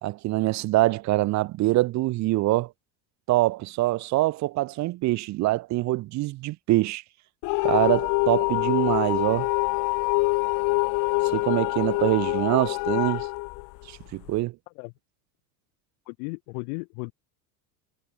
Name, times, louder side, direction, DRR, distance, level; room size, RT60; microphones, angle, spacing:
voice 1, 0.0-2.7 3.3-7.0 7.6-9.5 11.3-13.3 13.9-14.5, right 18 dB, 40° right, 0.6 m, -24 dB
sound 1, 7.4-14.3, left 26 dB, 50° left, 0.4 m, -25 dB
voice 2, 16.1-17.1, left 37 dB, 80° left, 1.4 m, -35 dB
cardioid pair, 145°, 44 cm